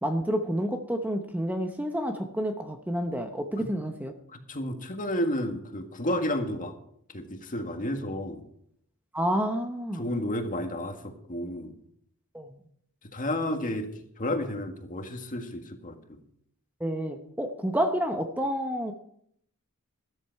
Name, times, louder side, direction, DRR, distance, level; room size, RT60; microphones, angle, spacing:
voice 1, 0.0-4.1 9.1-10.1 12.3-12.6 16.8-18.9, equal, 10° right, 5 dB, 0.9 m, -29 dB
voice 2, 4.3-6.7 7.1-8.4 9.9-11.7 13.1-13.9 14.2-16.2, left 1 dB, 35° left, 5 dB, 1.8 m, -31 dB
13.5 x 13.5 x 4.7 m, 0.69 s
head